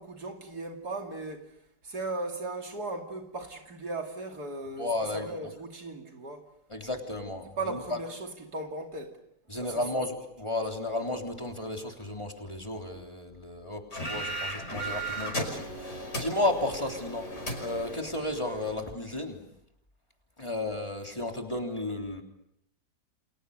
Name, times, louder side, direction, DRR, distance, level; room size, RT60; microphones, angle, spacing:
voice 1, 0.0-6.5 7.6-9.2 9.5-9.9, right 2 dB, 65° right, 3.2 m, -37 dB
voice 2, 4.8-5.2 6.7-7.8 9.5-19.4 20.4-22.2, left 1 dB, 15° left, 3.5 m, -33 dB
sound 1, 13.9-18.8, right 1 dB, 45° left, 5.8 m, -36 dB
30.0 x 27.5 x 6.7 m
omnidirectional pair, 1.8 m